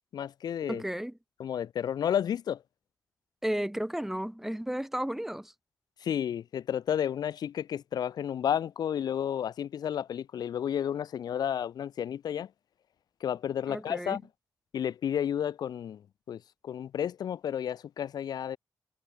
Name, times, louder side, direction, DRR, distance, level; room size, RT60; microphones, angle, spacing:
voice 1, 0.1-0.8 1.4-2.6 6.0-12.5 13.2-14.2 14.7-16.0 16.3-18.6, left 9 dB, 80° left, 0.5 m, -31 dB
voice 2, 0.7-1.1 3.4-5.5 13.7-14.2, equal, 5° right, 2.0 m, -33 dB
wide cardioid pair, 110°, 7 cm